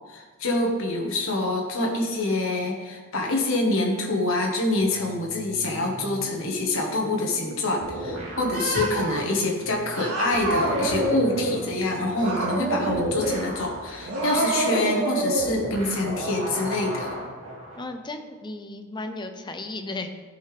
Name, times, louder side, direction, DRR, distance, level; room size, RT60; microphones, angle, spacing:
voice 1, 0.1-17.1, left 2 dB, 65° left, 0 dB, 1.5 m, -26 dB
sound 1, 4.7-14.6, right 1 dB, 30° right, 1.6 m, -43 dB
sound 2, 7.8-10.0 10.3-17.9, right 1 dB, 65° right, 2.5 m, -36 dB
Cat, 8.5-9.2 9.9-11.6 12.1-13.4 14.0-15.5, right 2 dB, 90° right, 2.6 m, -27 dB
voice 2, 17.8-20.1, left 2 dB, 20° left, 6 dB, 0.6 m, -34 dB
13.0 x 5.7 x 3.5 m, 1.4 s
head